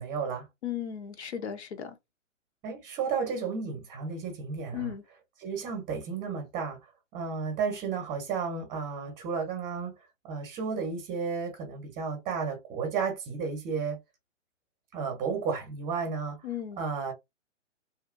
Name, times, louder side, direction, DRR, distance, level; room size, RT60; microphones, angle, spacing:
voice 1, 0.0-0.5 2.6-4.9 5.4-6.8 7.1-9.9 10.2-14.0 14.9-16.4 16.8-17.1, right 5 dB, 20° right, 0.9 m, -32 dB
voice 2, 0.6-2.0 4.7-5.0 16.4-16.8, left 9 dB, 60° left, 0.9 m, -36 dB
2.8 x 2.4 x 2.5 m
figure-of-eight pair, 125°, 38 cm